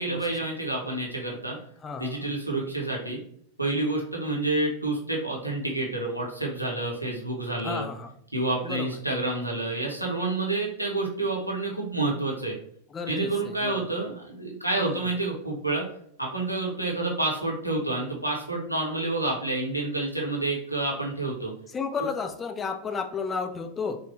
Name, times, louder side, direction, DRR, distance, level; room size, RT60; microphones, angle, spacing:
voice 1, 0.0-1.6 2.0-3.2 3.6-7.8 8.3-12.6 13.1-15.8 16.2-21.5, right 2 dB, 90° right, -2 dB, 0.8 m, -29 dB
voice 2, 1.8-2.3 7.6-8.1 8.6-9.0 12.9-13.9 14.8-15.1 21.7-24.0, left 5 dB, 20° left, 5 dB, 0.3 m, -33 dB
3.1 x 2.1 x 3.0 m, 0.65 s
figure-of-eight pair, 90°, 0 cm